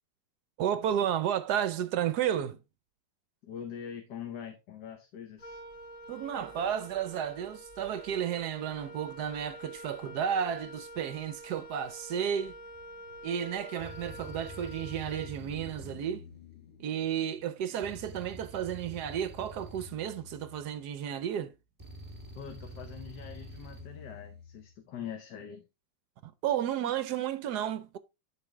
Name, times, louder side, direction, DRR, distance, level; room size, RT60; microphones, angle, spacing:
voice 1, 0.6-2.6 6.1-12.5 13.2-16.2 16.8-21.5 26.2-28.0, right 9 dB, 70° right, 1.0 m, -32 dB
voice 2, 3.4-5.6 22.3-25.7, left 8 dB, 65° left, 1.6 m, -43 dB
Wind instrument woodwind instrument, 5.4-15.8, equal, 45° left, 1.7 m, -47 dB
sound 1, 12.0-21.5, left 5 dB, 85° left, 2.6 m, -58 dB
sound 2, 12.7-13.0 13.8-17.1 17.8-21.1 21.8-24.7, equal, 10° right, 2.4 m, -48 dB
11.0 x 4.8 x 3.2 m
omnidirectional pair, 2.1 m